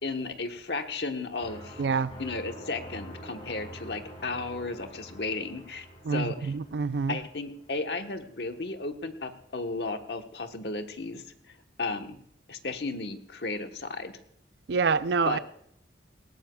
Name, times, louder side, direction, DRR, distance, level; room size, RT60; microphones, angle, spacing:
voice 1, 0.0-1.8 2.2-5.9 6.1-6.5 7.1-11.2 11.8-12.2 12.5-14.1 15.2-15.4, left 3 dB, 70° left, 1.2 m, -34 dB
sound 1, 1.4-8.1, equal, 30° left, 5.3 m, -46 dB
voice 2, 1.8-2.1 6.1-7.2 14.7-15.4, right 5 dB, 70° right, 0.5 m, -26 dB
19.0 x 17.0 x 2.3 m
head